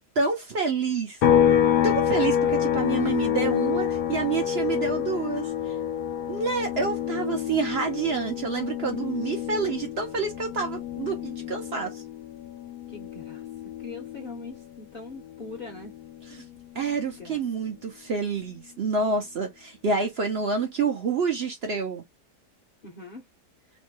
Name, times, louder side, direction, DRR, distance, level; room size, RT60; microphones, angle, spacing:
voice 1, 0.2-1.2 1.8-5.8 6.3-12.0 16.3-16.4 16.7-22.0, right 4 dB, 55° right, 0.7 m, -28 dB
sound 1, 1.2-14.8 15.1-17.3, left 9 dB, 75° left, 1.1 m, -27 dB
voice 2, 12.9-13.5 13.8-15.9 16.9-17.4 22.8-23.3, left 3 dB, 45° left, 0.8 m, -42 dB
3.0 x 2.2 x 3.1 m
omnidirectional pair, 1.7 m